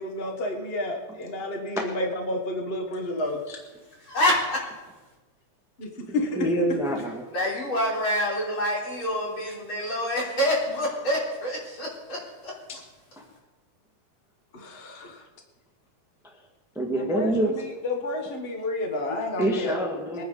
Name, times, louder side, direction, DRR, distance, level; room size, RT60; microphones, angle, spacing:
voice 1, 0.0-3.4 5.8-6.5 14.5-15.3 16.9-19.8 20.2-20.3, left 1 dB, 65° left, 2 dB, 0.5 m, -31 dB
voice 2, 3.9-5.0 7.3-12.8, equal, 40° left, -4 dB, 4.4 m, -27 dB
voice 3, 6.4-7.3 13.2-13.3 16.7-17.5 19.4-20.2, right 1 dB, ahead, 0 dB, 0.8 m, -26 dB
23.0 x 10.0 x 4.0 m, 1.2 s
omnidirectional pair, 3.6 m